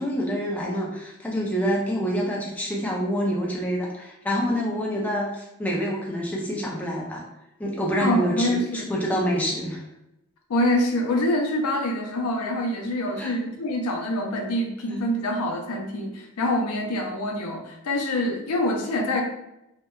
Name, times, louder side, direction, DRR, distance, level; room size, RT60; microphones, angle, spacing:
voice 1, 0.0-7.2 7.6-9.8 13.2-13.3 14.9-15.0, equal, 5° left, -3 dB, 0.3 m, -27 dB
voice 2, 8.0-8.9 10.5-19.2, left 1 dB, 85° left, 2 dB, 0.5 m, -25 dB
2.7 x 2.1 x 2.3 m, 0.87 s
head